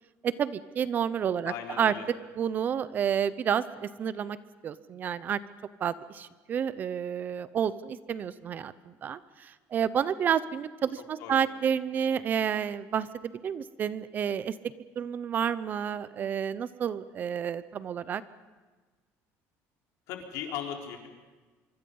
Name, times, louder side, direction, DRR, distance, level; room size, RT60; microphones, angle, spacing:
voice 1, 0.2-1.9 2.4-4.4 4.6-5.4 5.8-14.5 15.0-18.2, right 8 dB, 30° right, 16 dB, 0.7 m, -30 dB
voice 2, 1.4-2.1 11.2-11.4 20.1-21.1, left 9 dB, 70° left, 2 dB, 4.1 m, -37 dB
25.0 x 24.5 x 5.5 m, 1.3 s
cardioid pair, 165°, 6 cm